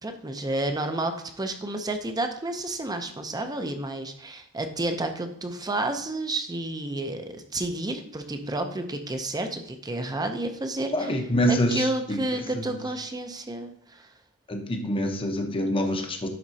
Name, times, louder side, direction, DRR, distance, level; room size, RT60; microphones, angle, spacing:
voice 1, 0.0-11.1 11.5-14.1, right 2 dB, 20° right, 6 dB, 0.6 m, -30 dB
voice 2, 10.9-12.7 14.5-16.3, equal, 25° left, 3 dB, 0.9 m, -26 dB
11.0 x 4.3 x 2.8 m, 0.64 s
head